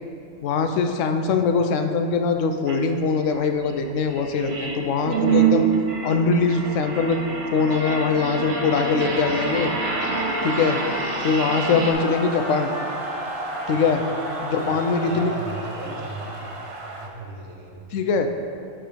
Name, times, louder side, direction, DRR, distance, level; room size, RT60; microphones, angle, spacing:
voice 1, 0.4-5.7 6.0-7.2 7.5-9.7 10.4-10.8 11.2-12.7 13.7-14.0 14.4-15.3 17.9-18.3, left 4 dB, 85° left, 6 dB, 1.0 m, -22 dB
sound 1, 2.7-2.8 3.2-11.9, right 5 dB, 60° right, 1.0 m, -26 dB
Trumpet, 7.0-15.4, equal, ahead, 1.6 m, -38 dB
sound 2, 7.2-17.1, right 1 dB, 40° right, 0.5 m, -34 dB
voice 2, 14.7-16.6 17.0-18.0, right 2 dB, 80° right, 0 dB, 1.4 m, -37 dB
9.3 x 3.7 x 5.0 m, 2.4 s
omnidirectional pair, 1.3 m